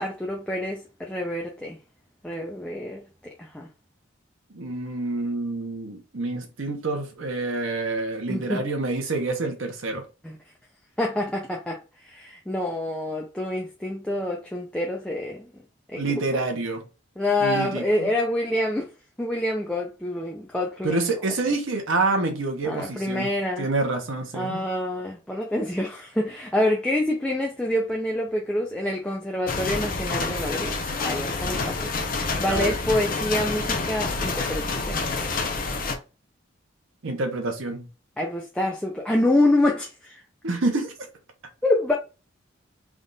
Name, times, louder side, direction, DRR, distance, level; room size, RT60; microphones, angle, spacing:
voice 1, 0.0-1.8 2.2-3.7 8.3-8.6 10.2-10.4 11.0-15.5 15.9-16.0 16.3-16.4 17.2-18.9 19.2-21.1 22.6-23.7 24.3-35.1 38.2-40.2 41.6-41.9, left 1 dB, 5° left, 0.4 m, -27 dB
voice 2, 4.5-10.0 15.9-16.8 17.4-18.1 20.8-23.3 23.6-24.6 32.5-32.7 37.0-37.9 40.4-40.9, right 3 dB, 80° right, 1.0 m, -27 dB
sound 1, 29.5-36.0, left 3 dB, 45° left, 0.7 m, -28 dB
3.6 x 2.4 x 3.9 m
head